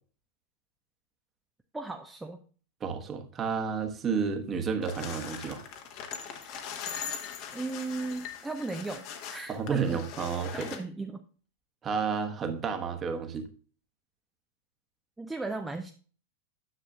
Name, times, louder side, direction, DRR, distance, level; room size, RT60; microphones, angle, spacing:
voice 1, 1.7-2.4 6.4-6.8 7.5-10.0 10.5-11.3 15.2-15.9, right 3 dB, 10° right, 5 dB, 0.5 m, -37 dB
voice 2, 2.8-5.6 9.5-10.7 11.8-13.5, right 6 dB, 25° right, 6 dB, 1.1 m, -31 dB
sound 1, 4.8-10.8, left 7 dB, 45° left, 1.1 m, -40 dB
9.9 x 7.0 x 2.3 m, 0.40 s
figure-of-eight pair, 90°, 0 cm